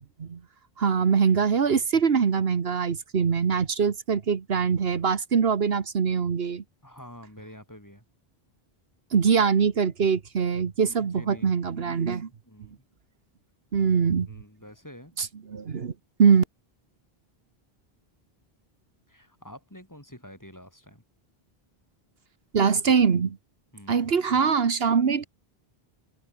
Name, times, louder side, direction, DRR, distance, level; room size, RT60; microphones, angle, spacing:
voice 1, 0.8-6.6 9.1-12.3 13.7-14.3 15.2-15.9 16.2-16.4 22.5-23.4 23.9-25.3, right 6 dB, 75° right, 1.4 m, -23 dB
voice 2, 6.8-8.0 10.8-12.1 12.5-12.8 14.3-15.1 19.1-21.0 23.7-24.1, equal, 20° left, 5.0 m, -47 dB
omnidirectional pair, 1.0 m